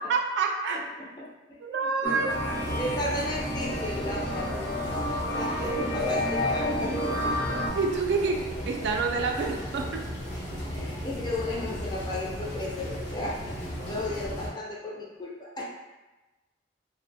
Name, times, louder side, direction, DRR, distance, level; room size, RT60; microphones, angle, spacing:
voice 1, 0.1-0.8 1.6-2.3 7.7-10.0, right 4 dB, 75° right, 3 dB, 0.3 m, -27 dB
voice 2, 0.7-1.6 1.8-2.2 2.8-4.7 5.3-7.6 10.7-15.6, left 1 dB, 25° left, -3 dB, 0.3 m, -35 dB
sound 1, 2.0-7.7, left 1 dB, 55° left, 0.8 m, -30 dB
sound 2, 2.3-14.5, equal, 80° left, 0.6 m, -36 dB
2.4 x 2.0 x 2.6 m, 1.1 s
head